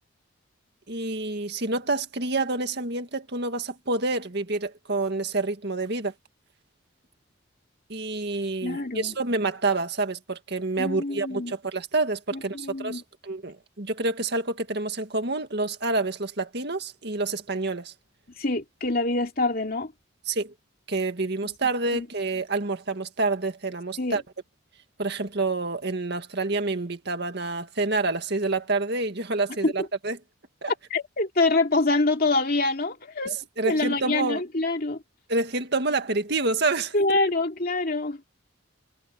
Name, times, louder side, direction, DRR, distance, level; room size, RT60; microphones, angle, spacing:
voice 1, 0.9-6.1 7.9-17.9 20.3-20.5 20.9-24.2 25.0-30.2 30.6-30.7 33.2-34.4 35.3-36.9, right 3 dB, 55° right, 2.0 m, -28 dB
voice 2, 8.6-9.1 10.8-11.5 12.3-13.0 18.4-19.9 21.9-22.1 24.0-24.2 29.6-29.7 30.9-33.3 33.6-35.0 36.9-38.2, left 2 dB, 45° left, 2.7 m, -25 dB
head